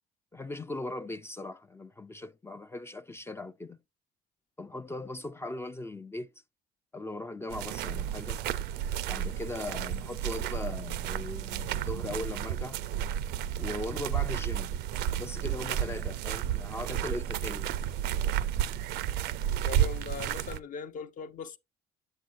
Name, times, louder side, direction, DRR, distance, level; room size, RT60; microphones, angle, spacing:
voice 1, 0.3-3.8 4.6-6.3 6.9-8.4 9.1-12.8 13.6-14.7 15.2-17.7, left 2 dB, 15° left, 0.4 m, -39 dB
sound 1, 7.5-20.6, right 11 dB, 85° right, 0.5 m, -32 dB
voice 2, 19.6-21.6, left 6 dB, 50° left, 0.8 m, -40 dB
8.5 x 7.7 x 2.6 m
cardioid pair, 110°, 17 cm